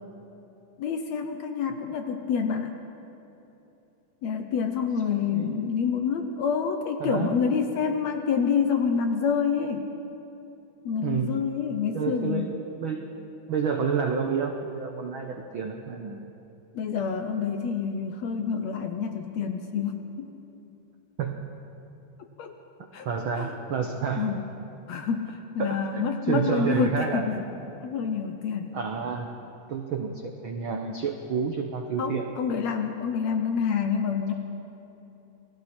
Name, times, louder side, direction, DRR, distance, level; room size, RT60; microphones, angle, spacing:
voice 1, 0.8-2.8 4.2-9.9 10.9-12.5 16.7-20.3 22.2-22.6 22.9-23.1 23.3-23.5 24.2-24.4 24.9-27.5 27.8-28.8 32.0-34.3, left 6 dB, 65° left, 5 dB, 1.9 m, -27 dB
voice 2, 5.1-5.5 7.0-7.3 11.0-11.4 11.9-13.1 13.5-16.3 21.2-21.4 23.0-24.3 25.6-27.3 28.7-29.3 29.7-32.3, right 6 dB, 70° right, 3 dB, 1.2 m, -29 dB
29.0 x 20.5 x 4.4 m, 3.0 s
omnidirectional pair, 3.8 m